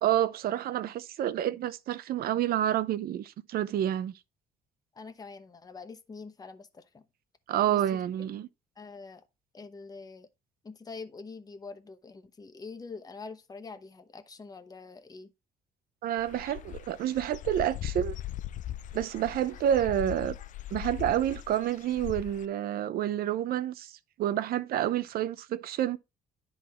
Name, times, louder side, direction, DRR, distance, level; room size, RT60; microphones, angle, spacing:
voice 1, 0.0-4.1 7.5-8.5 16.0-18.2 18.9-20.4 20.7-23.9 24.2-26.0, right 11 dB, 65° right, 0.7 m, -29 dB
voice 2, 4.9-7.0 7.7-8.4 8.8-9.2 9.5-10.3 10.6-15.3, left 4 dB, 20° left, 0.9 m, -45 dB
Dog / Bird, 16.2-22.5, left 13 dB, 50° left, 0.4 m, -39 dB
10.0 x 4.0 x 4.4 m
cardioid pair, 110°, 17 cm